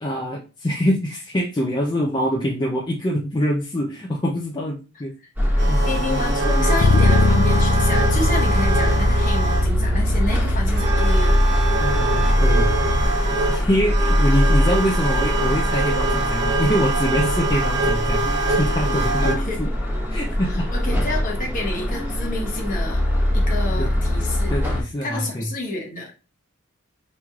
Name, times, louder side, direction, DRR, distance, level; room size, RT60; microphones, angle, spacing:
voice 1, 0.0-5.1 5.7-6.2 11.8-12.7 13.5-19.7 20.1-20.7 23.8-23.9 24.5-25.5, equal, 20° left, -2 dB, 0.5 m, -24 dB
sound 1, 5.4-24.8, equal, 10° right, 1.1 m, -22 dB
sound 2, 5.6-9.8 10.7-19.3, right 2 dB, 55° right, 0.9 m, -25 dB
voice 2, 5.9-11.4 13.7-13.9 19.2-19.7 20.5-23.0 23.3-24.5 25.0-26.1, left 2 dB, 40° left, 0 dB, 1.1 m, -29 dB
Bass guitar, 6.8-13.0, left 2 dB, 85° left, 0.5 m, -21 dB
5.3 x 3.1 x 2.3 m, 0.32 s
head